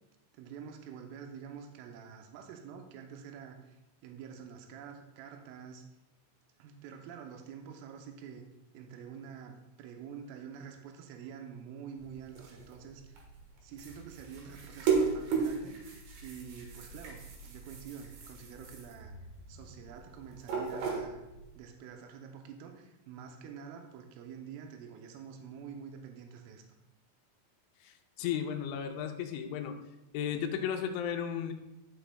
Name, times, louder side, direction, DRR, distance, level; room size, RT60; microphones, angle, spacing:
voice 1, 0.3-3.8 4.0-5.8 6.6-8.4 8.7-13.2 13.6-15.8 16.2-19.1 19.5-21.2 21.6-26.6, right 7 dB, 85° right, 3 dB, 3.3 m, -47 dB
sound 1, 12.0-21.6, right 5 dB, 65° right, 2.8 m, -36 dB
voice 2, 27.8-29.8 30.1-31.5, left 8 dB, 80° left, 5 dB, 2.8 m, -34 dB
13.0 x 5.7 x 2.2 m, 0.95 s
omnidirectional pair, 5.7 m